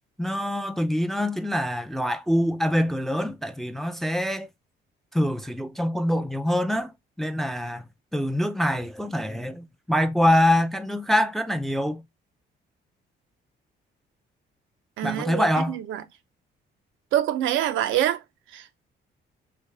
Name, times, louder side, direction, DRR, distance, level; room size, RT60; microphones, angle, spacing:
voice 1, 0.2-4.5 5.1-6.9 7.2-7.8 8.1-12.0 15.0-15.8, left 1 dB, ahead, 0.3 m, -24 dB
voice 2, 15.0-16.0 17.1-18.2 18.5-18.7, right 12 dB, 80° right, 0.5 m, -25 dB
3.4 x 2.5 x 3.2 m
cardioid pair, 90°, 20 cm